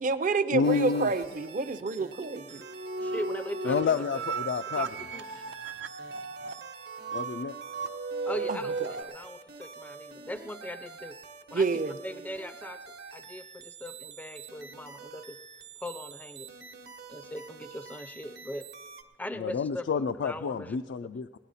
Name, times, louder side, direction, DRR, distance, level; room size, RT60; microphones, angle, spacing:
voice 1, 0.0-2.6 8.5-9.0 11.5-12.0, right 3 dB, 50° right, 12 dB, 0.6 m, -29 dB
voice 2, 0.5-1.1 3.6-4.9 7.1-7.5 19.4-21.4, left 5 dB, 80° left, 10 dB, 0.3 m, -29 dB
sound 1, 0.6-19.0, right 5 dB, 65° right, 1.0 m, -47 dB
sound 2, 2.5-9.0, right 4 dB, 85° right, 0.8 m, -36 dB
voice 3, 3.0-4.2 4.8-5.4 8.3-11.2 11.5-11.7 12.0-15.4 15.8-16.5 17.1-18.7 19.2-20.8, left 1 dB, 10° left, 10 dB, 0.4 m, -40 dB
18.5 x 11.0 x 4.1 m, 1.2 s
head